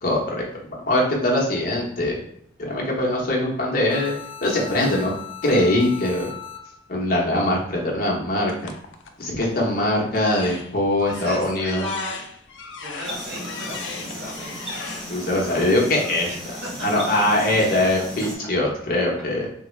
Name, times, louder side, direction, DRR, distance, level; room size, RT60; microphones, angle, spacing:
voice 1, 0.0-2.2 2.6-4.1 4.4-5.1 5.4-6.3 6.9-8.7 9.2-11.9 15.1-16.3 16.8-19.5, left 1 dB, 50° left, -2 dB, 0.8 m, -22 dB
sound 1, 3.9-6.9, left 8 dB, 25° left, 0.3 m, -38 dB
sound 2, 8.5-9.6 10.1-15.6, left 5 dB, 90° left, 0.4 m, -38 dB
voice 2, 11.0-12.1 12.8-14.6 16.3-16.7, equal, 70° right, -4 dB, 1.4 m, -35 dB
sound 3, 13.0-18.3, equal, ahead, 0.9 m, -35 dB
3.7 x 2.1 x 3.1 m, 0.70 s
head